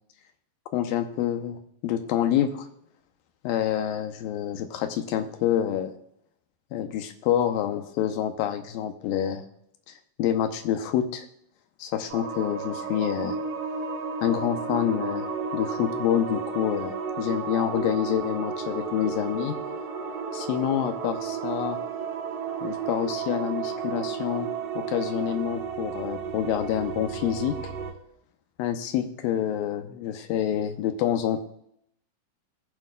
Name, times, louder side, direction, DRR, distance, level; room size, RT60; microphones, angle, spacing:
voice 1, 0.7-2.7 3.4-5.9 6.7-9.4 9.9-11.3 11.8-13.4 14.2-15.3 15.5-19.6 20.3-21.8 22.6-24.5 24.8-27.6 28.6-31.4, left 10 dB, 75° left, 7 dB, 2.4 m, -27 dB
sound 1, 12.1-27.9, right 5 dB, 60° right, 2.9 m, -33 dB
22.0 x 7.3 x 2.3 m, 0.73 s
omnidirectional pair, 4.3 m